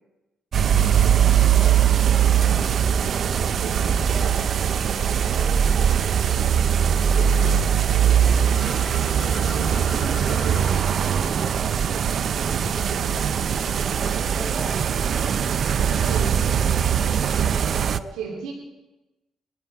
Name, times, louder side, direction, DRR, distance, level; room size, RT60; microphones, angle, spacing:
sound 1, 0.5-18.0, right 8 dB, 60° right, 0.6 m, -21 dB
voice 1, 2.3-2.6 3.9-4.5 4.9-6.4 12.7-12.9 13.7-17.3 17.9-18.4, right 1 dB, 40° right, -1 dB, 6.4 m, -41 dB
voice 2, 3.6-4.0 7.1-7.5 8.1-11.2 12.5-13.2 16.1-16.4 18.1-18.5, right 5 dB, 90° right, 0 dB, 2.6 m, -36 dB
sound 2, 8.4-11.0 11.3-13.6, left 5 dB, 75° left, 1.9 m, -43 dB
23.0 x 11.5 x 4.7 m, 1.0 s
cardioid pair, 90°, 0 cm